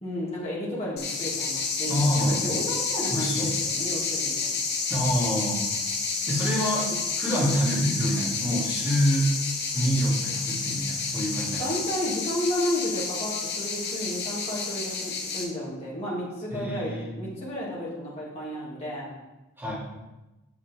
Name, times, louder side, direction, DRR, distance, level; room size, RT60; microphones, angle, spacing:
voice 1, 0.0-4.5 11.6-19.1, equal, 25° left, -7 dB, 2.6 m, -32 dB
sound 1, 1.0-15.4, left 4 dB, 45° left, 1.3 m, -30 dB
voice 2, 1.9-2.4 3.1-3.5 4.9-5.7 6.3-6.9 7.2-9.4 9.7-11.6 16.5-17.1 19.6-19.7, equal, 10° right, -8 dB, 3.1 m, -26 dB
9.0 x 6.9 x 3.6 m, 1.0 s
head